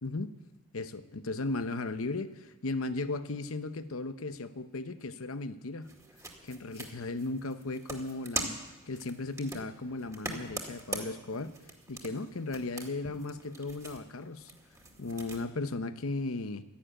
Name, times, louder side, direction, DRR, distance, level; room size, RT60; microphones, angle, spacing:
voice 1, 0.7-5.9 6.4-8.6 8.9-11.5 11.9-14.5 15.0-16.6, left 3 dB, 75° left, 11 dB, 0.8 m, -36 dB
sound 1, 5.8-15.4, right 2 dB, 15° right, 2.0 m, -43 dB
12.5 x 11.5 x 9.0 m, 1.1 s
head